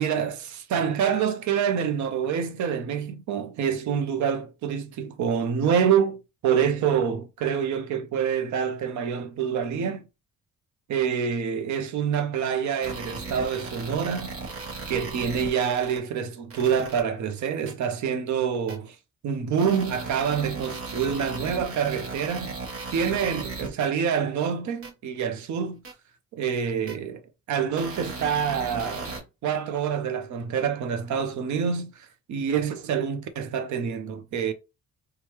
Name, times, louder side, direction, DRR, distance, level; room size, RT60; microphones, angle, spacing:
voice 1, 0.0-10.1 10.9-14.3 14.9-19.0 19.2-22.5 22.9-25.8 26.3-27.2 27.5-34.5, right 7 dB, 70° right, 0.7 m, -26 dB
sound 1, 12.8-16.0 16.5-17.0 17.7-17.8 18.7-18.8 19.6-23.9 24.8-24.9 25.8-25.9 26.9-27.0 27.8-29.2, right 3 dB, 45° right, 1.1 m, -37 dB
3.1 x 2.3 x 3.0 m
cardioid pair, 90°, 30 cm